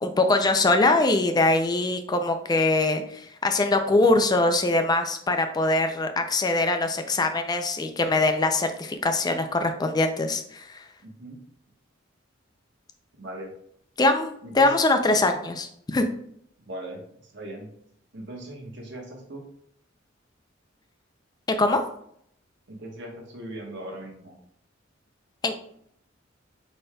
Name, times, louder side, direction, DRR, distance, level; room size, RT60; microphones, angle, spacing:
voice 1, 0.0-10.8 14.0-16.1 21.6-21.8 25.4-25.6, left 2 dB, 20° left, 7 dB, 0.4 m, -23 dB
voice 2, 11.0-11.4 13.2-13.5 14.4-14.7 16.6-17.7 18.1-19.5 22.7-24.4, right 1 dB, 65° right, 1 dB, 1.1 m, -39 dB
4.9 x 4.3 x 2.2 m, 0.69 s
head